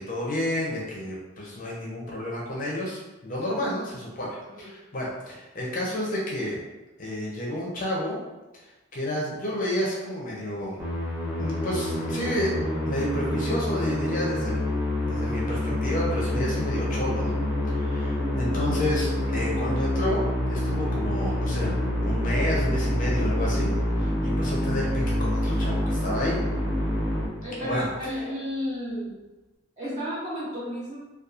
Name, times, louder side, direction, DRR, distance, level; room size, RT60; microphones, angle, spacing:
voice 1, 0.0-6.6 7.0-8.2 8.6-10.8 11.4-12.6 12.8-14.7 15.1-17.4 17.7-21.7 22.0-23.7 24.0-26.4 27.6-28.2, left 1 dB, 40° left, -4 dB, 0.5 m, -30 dB
Musical instrument, 10.8-27.9, left 1 dB, 5° right, 0.5 m, -27 dB
voice 2, 27.4-29.1 29.8-31.0, equal, 30° right, -9 dB, 0.8 m, -32 dB
2.8 x 2.2 x 2.4 m, 1.1 s
head